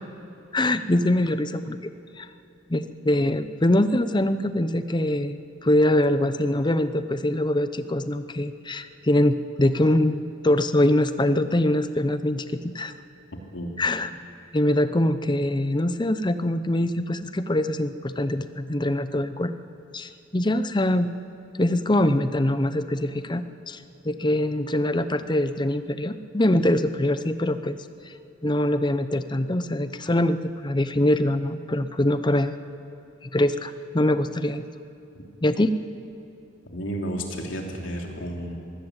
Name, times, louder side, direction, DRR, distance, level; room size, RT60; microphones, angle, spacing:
voice 1, 0.5-1.9 2.2-2.3 2.7-12.9 13.8-14.1 14.5-19.5 19.9-21.1 21.6-23.8 24.0-27.8 28.4-32.5 33.2-34.6 35.4-35.7, left 1 dB, 25° left, 11 dB, 0.7 m, -23 dB
voice 2, 36.7-38.6, equal, 85° left, 1 dB, 3.0 m, -32 dB
23.0 x 16.0 x 8.1 m, 2.9 s
head